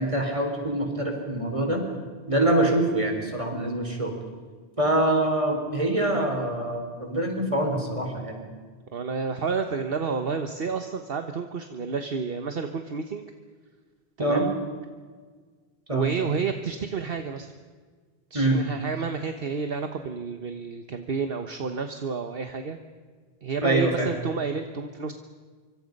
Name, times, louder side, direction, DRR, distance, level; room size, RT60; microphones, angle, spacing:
voice 1, 0.0-1.8 2.3-4.1 4.8-8.4 14.2-14.5 15.9-16.1 18.3-18.6 23.6-24.1, right 1 dB, 30° right, 3 dB, 4.2 m, -25 dB
voice 2, 8.9-13.2 14.2-14.5 15.9-17.5 18.3-22.8 23.4-25.1, right 5 dB, 60° right, 7 dB, 1.4 m, -30 dB
25.5 x 24.5 x 5.4 m, 1.5 s
omnidirectional pair, 1.1 m